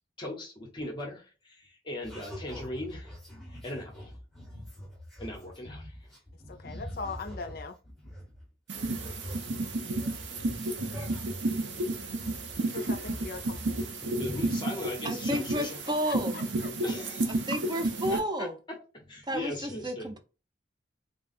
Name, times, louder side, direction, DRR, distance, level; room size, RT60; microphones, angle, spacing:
voice 1, 0.2-3.1 3.6-4.1 5.2-5.9 6.5-6.6 14.2-15.8 16.8-17.5 18.1-18.5 19.1-20.0, left 1 dB, 25° left, 0.9 m, -38 dB
sound 1, 2.0-8.5 8.7-12.6 12.9-13.9, equal, ahead, 1.0 m, -44 dB
voice 2, 6.5-7.8 12.7-14.2 16.0-16.7, left 4 dB, 55° left, 0.5 m, -40 dB
sound 2, 8.7-18.2, right 2 dB, 85° right, 0.7 m, -32 dB
voice 3, 15.0-16.4 17.2-18.6 19.3-20.2, equal, 25° right, 0.5 m, -32 dB
3.5 x 2.3 x 4.0 m
head